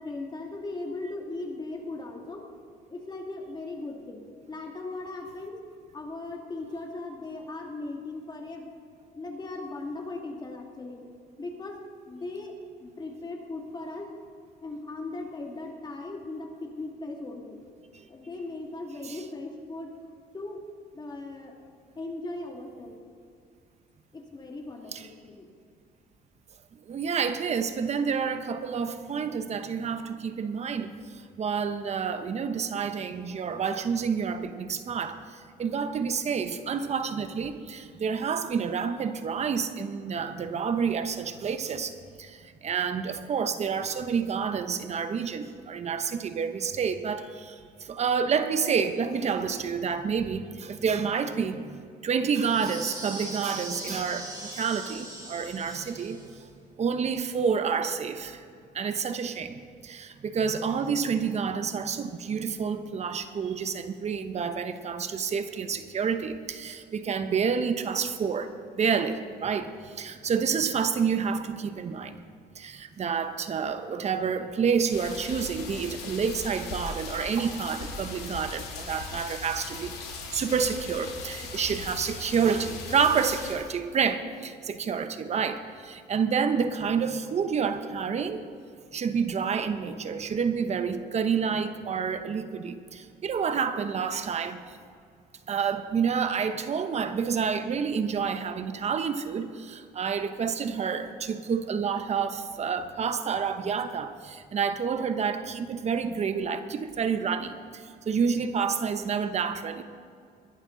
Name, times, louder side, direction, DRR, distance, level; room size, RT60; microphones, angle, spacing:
voice 1, 0.0-2.5 2.9-4.2 4.5-5.6 5.9-8.7 9.1-11.0 11.4-11.8 12.1-12.6 12.8-14.1 14.6-17.6 18.1-20.6 20.9-21.5 22.0-22.9 24.1-25.5 93.7-94.0 102.7-102.8, left 2 dB, 25° left, 1 dB, 2.4 m, -38 dB
voice 2, 26.8-56.2 56.8-58.4 58.7-72.3 72.5-80.0 80.3-88.4 88.9-94.7 95.5-109.8, right 6 dB, 40° right, 10 dB, 1.0 m, -29 dB
sound 1, 52.3-56.4, right 2 dB, 25° right, 3.7 m, -40 dB
sound 2, 74.9-83.5, left 4 dB, 75° left, 3.3 m, -39 dB
21.5 x 11.5 x 4.0 m, 2.3 s
cardioid pair, 110°, 17 cm